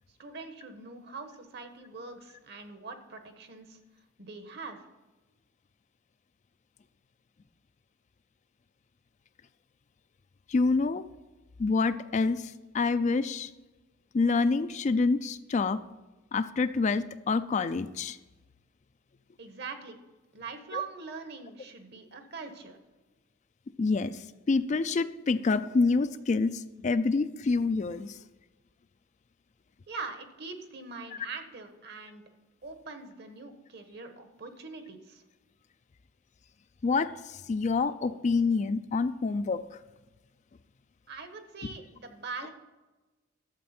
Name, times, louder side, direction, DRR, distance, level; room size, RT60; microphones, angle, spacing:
voice 1, 0.2-3.8 4.2-4.9 19.4-20.0 20.3-22.8 29.9-32.2 32.6-35.2 41.1-42.5, right 4 dB, 55° right, 7 dB, 1.2 m, -42 dB
voice 2, 10.5-11.0 11.6-13.5 14.1-15.8 16.3-18.2 20.7-20.8 23.8-28.2 36.8-39.6, left 4 dB, 35° left, 12 dB, 0.3 m, -27 dB
12.0 x 7.4 x 4.3 m, 1.2 s
head